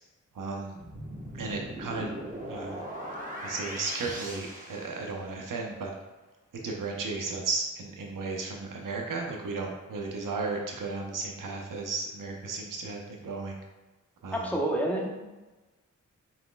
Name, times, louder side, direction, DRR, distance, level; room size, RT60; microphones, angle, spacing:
voice 1, 0.4-0.8 1.4-2.1 2.5-2.8 3.4-5.9 6.6-13.6 14.2-14.4, right 3 dB, 75° right, 0 dB, 0.7 m, -34 dB
sound 1, 0.8-5.5, right 1 dB, 25° right, 1.1 m, -40 dB
voice 2, 14.3-15.1, right 1 dB, 5° left, -2 dB, 1.0 m, -28 dB
4.1 x 4.0 x 2.3 m, 1.2 s
cardioid pair, 50°, 32 cm